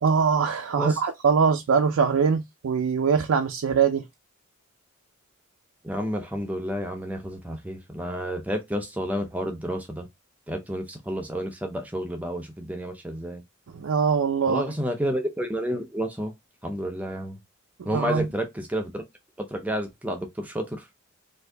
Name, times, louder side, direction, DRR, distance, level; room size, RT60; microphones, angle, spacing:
voice 1, 0.0-4.0 13.8-14.6 17.9-18.3, right 6 dB, 90° right, 0.4 m, -22 dB
voice 2, 5.8-10.1 10.5-13.4 14.5-16.3 16.6-17.4 17.8-19.0 19.4-20.9, equal, 10° right, 0.4 m, -30 dB
2.7 x 2.6 x 3.2 m
head